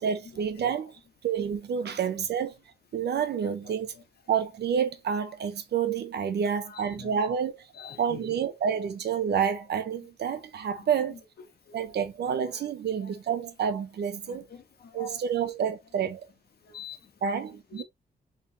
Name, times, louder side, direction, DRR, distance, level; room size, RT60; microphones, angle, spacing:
voice 1, 0.0-2.6 2.9-3.9 4.3-7.7 8.0-11.2 11.7-14.5 14.9-16.2 17.2-17.8, right 7 dB, 85° right, 1.0 m, -29 dB
voice 2, 6.7-7.1 7.8-8.4 11.7-11.9 12.5-12.6 13.0-13.1 14.3-15.2 16.6-17.3 17.7-17.8, left 6 dB, 70° left, 1.3 m, -45 dB
5.3 x 3.5 x 2.8 m
wide cardioid pair, 130°, 17 cm